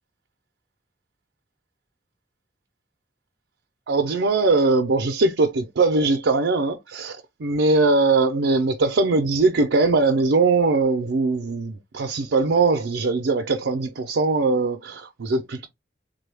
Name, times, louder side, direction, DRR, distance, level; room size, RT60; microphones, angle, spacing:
voice 1, 3.9-15.7, right 3 dB, 90° right, 0.5 m, -21 dB
3.7 x 2.3 x 3.3 m
head